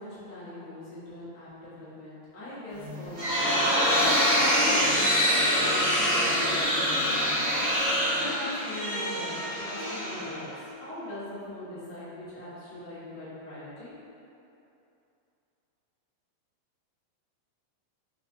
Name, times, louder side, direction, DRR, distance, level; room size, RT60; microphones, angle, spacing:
voice 1, 0.0-4.9 5.3-13.9, left 1 dB, 75° left, -12 dB, 0.8 m, -41 dB
sound 1, 2.8-10.7, equal, 45° right, 0.8 m, -25 dB
4.7 x 3.1 x 2.6 m, 2.7 s
omnidirectional pair, 3.7 m